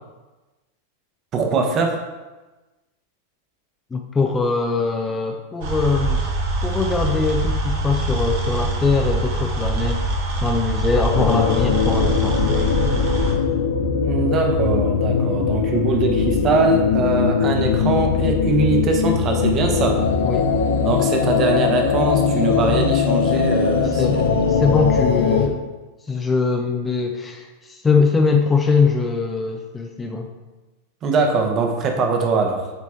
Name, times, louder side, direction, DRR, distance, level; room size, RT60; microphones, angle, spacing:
voice 1, 1.3-2.0 14.0-20.0 20.8-24.4 31.0-32.7, right 3 dB, 30° right, 3 dB, 1.3 m, -22 dB
voice 2, 3.9-6.2 6.6-10.1 10.4-12.7 20.2-20.5 23.8-25.6 26.0-30.3, left 4 dB, 15° left, 3 dB, 0.7 m, -22 dB
sound 1, 5.6-13.3, right 2 dB, 55° right, 1.6 m, -24 dB
sound 2, 11.1-25.5, left 6 dB, 60° left, 0.8 m, -20 dB
8.9 x 4.8 x 4.4 m, 1.2 s
figure-of-eight pair, 90°, 0 cm